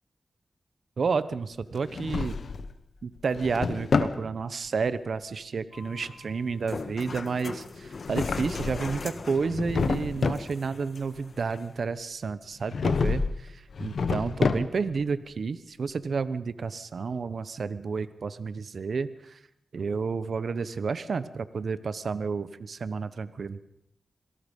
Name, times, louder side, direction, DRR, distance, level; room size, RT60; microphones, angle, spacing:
voice 1, 1.0-2.4 3.0-19.4 19.7-23.6, right 5 dB, 70° right, 14 dB, 1.1 m, -31 dB
Drawer open or close, 1.8-2.7 3.2-4.2 7.8-9.0 9.4-10.5 12.7-13.4 13.7-15.0, left 5 dB, 75° left, 1.4 m, -28 dB
sound 1, 5.7-11.7, left 4 dB, 60° left, 1.6 m, -41 dB
26.5 x 18.5 x 5.5 m, 0.76 s
cardioid pair, 55°, 0 cm